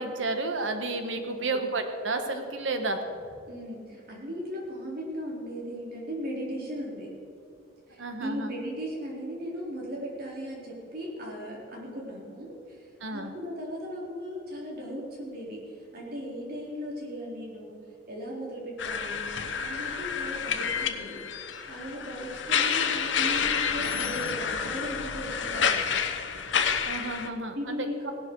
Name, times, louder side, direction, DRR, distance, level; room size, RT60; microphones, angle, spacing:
voice 1, 0.0-3.0 8.0-8.5 13.0-13.3 26.8-27.9, right 3 dB, 85° right, 6 dB, 1.5 m, -31 dB
voice 2, 1.3-1.6 3.5-7.1 7.9-12.9 13.1-17.8 18.1-19.3 19.6-21.2 21.7-26.0 27.5-28.1, equal, 55° right, -3 dB, 4.0 m, -37 dB
sound 1, 18.8-27.3, left 6 dB, 75° left, 1.0 m, -29 dB
17.5 x 12.0 x 4.8 m, 2.4 s
head